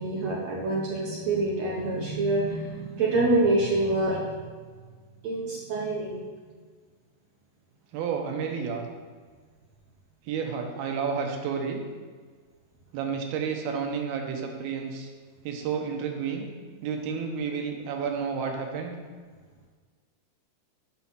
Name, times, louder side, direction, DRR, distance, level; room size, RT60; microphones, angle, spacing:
voice 1, 0.0-4.4 5.2-6.3, right 2 dB, 70° right, -3 dB, 1.6 m, -26 dB
voice 2, 7.9-8.9 10.3-11.8 12.9-15.1 15.4-16.5 16.8-19.0, right 6 dB, 85° right, 3 dB, 2.8 m, -31 dB
7.5 x 5.8 x 5.8 m, 1.5 s
omnidirectional pair, 4.3 m